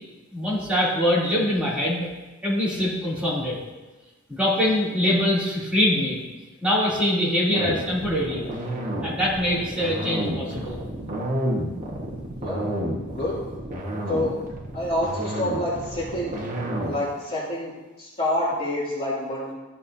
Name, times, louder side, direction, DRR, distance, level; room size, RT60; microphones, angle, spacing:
voice 1, 0.3-2.1 2.4-3.6 4.3-6.2 6.6-8.5 9.0-10.8, left 1 dB, 5° right, -9 dB, 3.0 m, -23 dB
sound 1, 7.5-17.0, right 1 dB, 40° right, 1.5 m, -30 dB
voice 2, 14.7-16.4 16.8-19.5, left 1 dB, 30° left, -8 dB, 2.6 m, -27 dB
14.0 x 6.3 x 2.8 m, 1.2 s
head